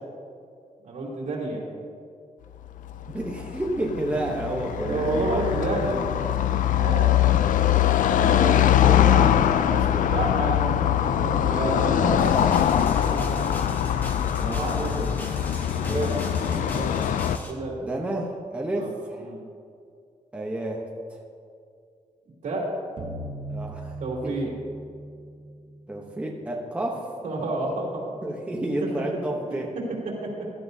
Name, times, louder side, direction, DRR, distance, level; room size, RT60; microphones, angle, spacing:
voice 1, 0.8-1.6 4.8-6.0 6.6-7.5 10.0-13.5 14.4-14.9 15.8-16.2 16.5-17.0 17.5-17.8 18.8-18.9 19.2-19.4 22.4-22.7 24.0-24.5 27.2-28.0 28.5-28.9 29.5-29.6 30.2-30.3, right 2 dB, 75° right, -4 dB, 3.1 m, -30 dB
Car passing by / Traffic noise roadway noise, 2.7-17.4, left 11 dB, 85° left, 0.4 m, -22 dB
voice 2, 3.1-5.5 8.2-10.1 14.4-15.1 15.8-16.1 17.8-19.3 20.3-21.2 23.5-24.4 25.9-27.1 28.2-29.7, right 1 dB, 10° right, -1 dB, 0.9 m, -31 dB
sound 1, 12.2-17.5, left 1 dB, 15° left, 1.1 m, -38 dB
sound 2, 23.0-26.1, right 1 dB, 40° right, 1.1 m, -38 dB
15.5 x 12.0 x 2.7 m, 2.3 s
wide cardioid pair, 180°, 13 cm